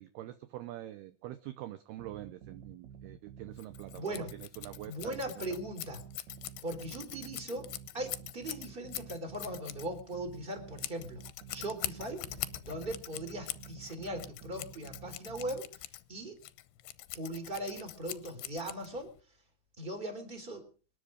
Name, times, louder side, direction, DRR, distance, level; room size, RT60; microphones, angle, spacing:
voice 1, 0.0-5.4, right 14 dB, 75° right, 11 dB, 2.5 m, -45 dB
sound 1, 2.0-15.6, right 8 dB, 55° right, 2.3 m, -51 dB
Scissors, 3.6-19.2, left 16 dB, 75° left, 2.7 m, -44 dB
voice 2, 3.9-4.4 4.9-6.0 6.6-7.7 7.9-11.2 11.5-12.2 12.6-16.4 17.1-19.1 19.8-20.7, right 1 dB, 15° right, 7 dB, 3.4 m, -39 dB
26.0 x 10.5 x 5.1 m, 0.40 s
omnidirectional pair, 5.2 m